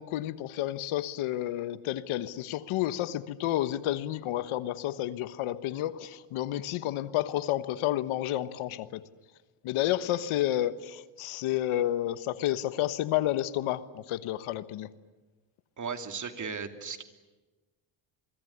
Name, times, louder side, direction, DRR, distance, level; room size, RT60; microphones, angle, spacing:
voice 1, 0.0-9.1 9.6-14.9, left 13 dB, 80° left, 1.3 m, -30 dB
voice 2, 15.8-17.0, right 5 dB, 35° right, 2.7 m, -36 dB
25.0 x 23.0 x 9.9 m
cardioid pair, 105°, 50 cm